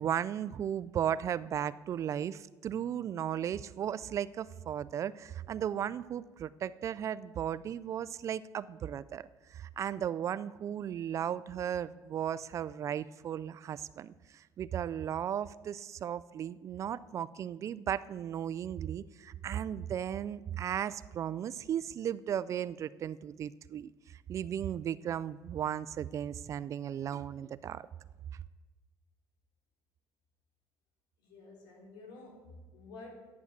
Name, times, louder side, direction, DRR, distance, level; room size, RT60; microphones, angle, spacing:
voice 1, 0.0-9.2 9.5-27.9, right 9 dB, 45° right, 17 dB, 0.4 m, -36 dB
voice 2, 31.2-33.3, left 3 dB, 85° left, 1 dB, 3.7 m, -51 dB
12.0 x 9.5 x 7.3 m, 1.3 s
cardioid pair, 120°, 7 cm